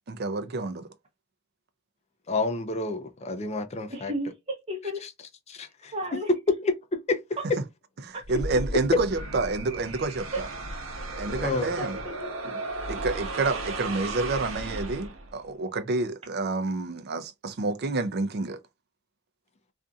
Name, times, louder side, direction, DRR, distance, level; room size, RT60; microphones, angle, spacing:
voice 1, 0.1-0.9 8.0-10.5 11.2-12.0 12.9-18.6, right 3 dB, 50° right, 0.5 m, -29 dB
voice 2, 2.3-4.1 5.5-5.9 6.5-7.2 11.4-11.7 12.4-12.6, left 3 dB, 30° left, 0.5 m, -29 dB
voice 3, 3.9-5.0 5.9-6.3 7.4-7.5 8.1-8.2 10.3-10.4 11.8-12.3, right 1 dB, 30° right, 0.9 m, -33 dB
sound 1, 8.2-15.5, right 2 dB, 90° right, 0.8 m, -35 dB
2.6 x 2.5 x 2.3 m
head